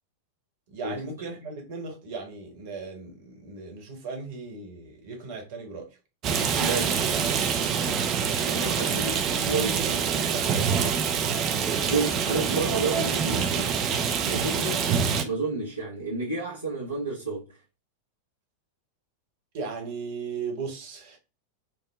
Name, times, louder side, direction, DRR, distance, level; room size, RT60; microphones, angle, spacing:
voice 1, 0.7-6.0 8.3-9.0 10.0-10.9 19.5-21.2, right 4 dB, 50° right, 1.1 m, -37 dB
Rain, 6.2-15.2, right 6 dB, 35° right, 0.5 m, -26 dB
voice 2, 6.6-7.0 8.5-9.2 9.5-10.1 11.8-13.7 14.2-17.6, right 3 dB, 85° right, 1.0 m, -31 dB
3.6 x 2.1 x 3.1 m
figure-of-eight pair, 90°, 0 cm